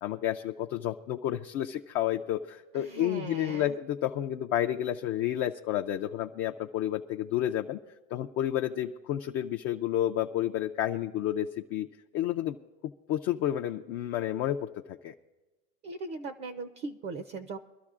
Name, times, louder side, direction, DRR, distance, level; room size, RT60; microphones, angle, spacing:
voice 1, 0.0-7.8 8.1-11.9 12.1-12.6 13.1-15.1, left 12 dB, 35° left, 4 dB, 0.4 m, -30 dB
voice 2, 2.7-3.8 15.8-17.6, right 3 dB, 30° right, 9 dB, 0.5 m, -39 dB
23.5 x 12.5 x 2.4 m, 1.2 s
supercardioid pair, 140°, 37 cm